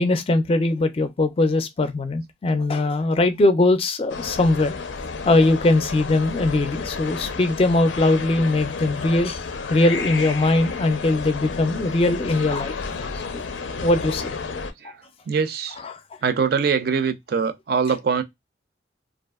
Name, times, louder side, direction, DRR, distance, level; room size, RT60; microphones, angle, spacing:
voice 1, 0.0-4.7 5.3-9.4 9.7-12.8 13.1-13.4 13.8-14.3 14.8-14.9 15.8-16.0, left 2 dB, 30° left, 0.4 m, -21 dB
sound 1, 4.1-14.7, left 4 dB, 90° left, 0.5 m, -31 dB
voice 2, 15.3-15.8 16.2-18.2, right 6 dB, 55° right, 0.4 m, -23 dB
2.6 x 2.4 x 2.3 m
head